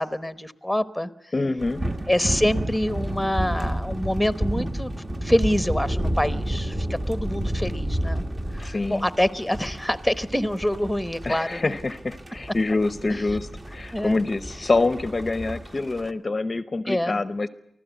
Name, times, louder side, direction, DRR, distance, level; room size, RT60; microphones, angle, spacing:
voice 1, 0.0-1.3 2.1-4.9 5.2-8.2 8.5-11.8 13.1-13.2 13.9-14.2 16.9-17.2, left 1 dB, ahead, 13 dB, 1.0 m, -26 dB
voice 2, 1.3-1.8 8.6-9.1 11.2-17.5, left 3 dB, 30° left, 13 dB, 0.7 m, -26 dB
sound 1, 1.6-16.1, right 1 dB, 25° right, 1.3 m, -31 dB
25.0 x 15.5 x 8.2 m, 0.81 s
wide cardioid pair, 135°, 0 cm